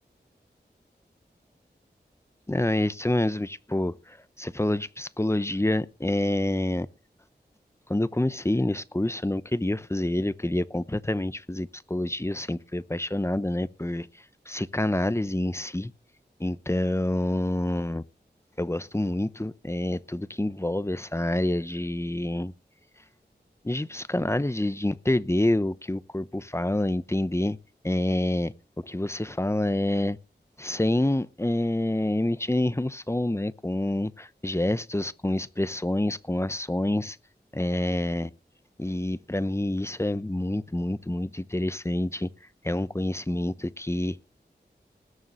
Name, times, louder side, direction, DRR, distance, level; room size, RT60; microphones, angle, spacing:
voice 1, 2.5-6.9 7.9-14.1 14.5-15.9 16.4-18.0 18.6-22.5 23.6-27.6 27.8-30.2 30.6-37.2 37.5-38.3 38.8-42.3 42.6-44.2, left 1 dB, 15° left, 0.9 m, -27 dB
20.0 x 7.1 x 6.7 m
wide cardioid pair, 70°, 18 cm